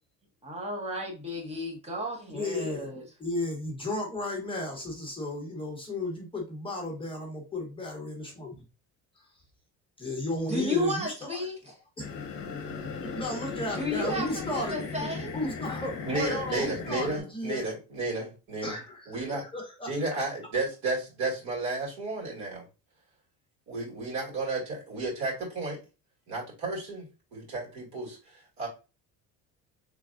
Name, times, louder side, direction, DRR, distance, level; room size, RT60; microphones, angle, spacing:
voice 1, 0.4-3.0 10.5-11.5 13.7-15.3, left 1 dB, 20° right, 1.1 m, -33 dB
voice 2, 2.3-8.6 9.2-9.3 10.0-11.4 13.0-14.8 15.3-17.7 18.6-20.0, left 2 dB, 15° left, 0.9 m, -34 dB
sound 1, 12.0-17.2, left 5 dB, 40° left, 1.0 m, -37 dB
voice 3, 16.0-18.8 19.1-19.4 19.9-22.7 23.7-25.8 26.3-27.1 27.3-28.7, right 2 dB, 60° right, 2.2 m, -32 dB
3.9 x 3.3 x 2.4 m
cardioid pair, 140°, 33 cm